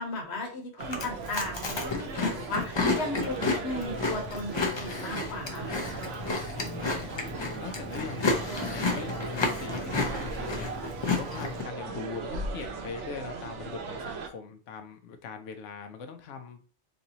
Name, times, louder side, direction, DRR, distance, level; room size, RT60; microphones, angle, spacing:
voice 1, 0.0-6.0, left 2 dB, 65° left, 3 dB, 1.2 m, -36 dB
Chewing mastication, 0.8-11.6, left 3 dB, 35° left, 0.4 m, -32 dB
sound 1, 0.8-14.3, right 5 dB, 80° right, 0.9 m, -38 dB
voice 2, 6.6-16.7, left 5 dB, 85° left, 6 dB, 0.9 m, -41 dB
4.0 x 2.6 x 2.8 m, 0.37 s
omnidirectional pair, 1.2 m